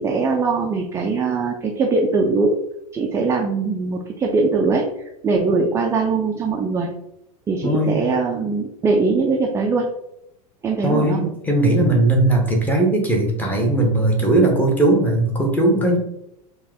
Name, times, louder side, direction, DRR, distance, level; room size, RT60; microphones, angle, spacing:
voice 1, 0.0-2.5 2.9-4.9 5.2-6.9 7.5-9.9 10.6-11.2, right 4 dB, 15° right, 1 dB, 0.4 m, -21 dB
voice 2, 7.6-8.1 10.8-16.0, right 2 dB, 10° left, 0 dB, 1.0 m, -18 dB
4.5 x 2.3 x 3.5 m, 0.80 s
figure-of-eight pair, 85°, 19 cm